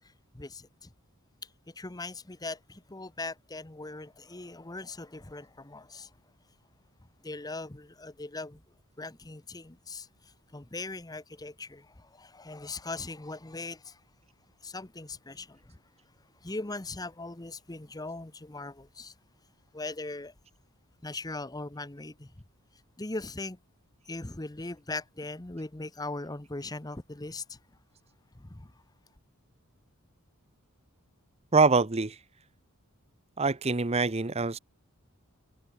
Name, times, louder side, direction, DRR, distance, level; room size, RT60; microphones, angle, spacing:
voice 1, 0.3-0.9 1.7-6.1 7.2-8.6 9.0-14.0 14.6-15.8 16.4-19.1 19.7-20.3 21.0-22.3 23.0-23.6 24.1-27.6 28.4-28.7, left 2 dB, 15° left, 0.9 m, -40 dB
voice 2, 31.5-32.2 33.4-34.6, right 4 dB, 30° right, 0.8 m, -24 dB
head